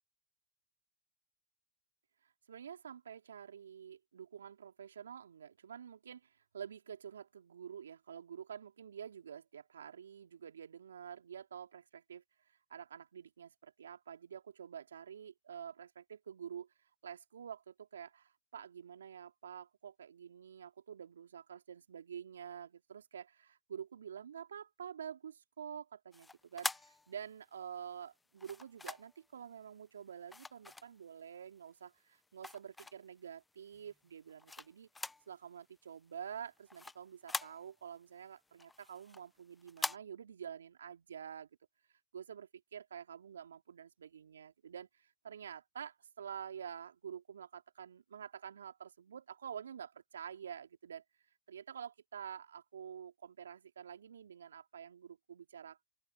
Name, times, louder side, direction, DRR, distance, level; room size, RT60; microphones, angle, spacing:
voice 1, 2.2-16.7 17.0-34.9 35.3-41.5 42.1-51.0 51.5-55.8, right 8 dB, 80° right, 3.0 m, -48 dB
sound 1, 26.1-27.6 28.4-29.3 30.3-31.4 31.8-33.2 33.7-35.3 35.6-35.7 36.1-38.0 38.4-40.0, left 3 dB, 10° left, 1.0 m, -43 dB
open air
hypercardioid pair, 85°, 0 cm